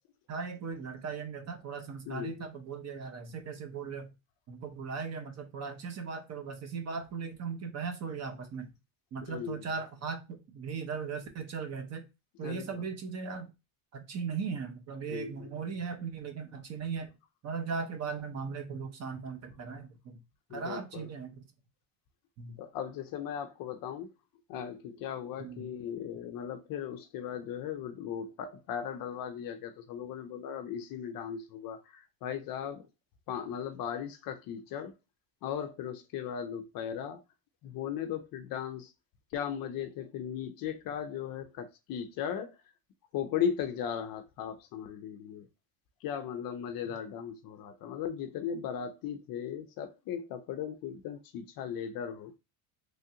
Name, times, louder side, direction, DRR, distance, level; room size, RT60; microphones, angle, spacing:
voice 1, 0.3-4.1 4.5-8.7 9.1-12.0 12.4-13.5 13.9-17.1 17.4-20.2 20.5-21.4 22.4-22.6 25.4-25.7, right 5 dB, 35° right, 0.5 m, -38 dB
voice 2, 2.1-2.4 9.2-9.7 12.4-12.9 15.1-15.8 20.5-21.1 22.6-24.1 24.5-32.9 33.3-34.9 35.4-37.2 37.6-38.9 39.3-42.6 43.1-45.5 46.0-52.4, left 8 dB, 50° left, 0.4 m, -37 dB
3.1 x 2.4 x 2.7 m
cardioid pair, 140°, 47 cm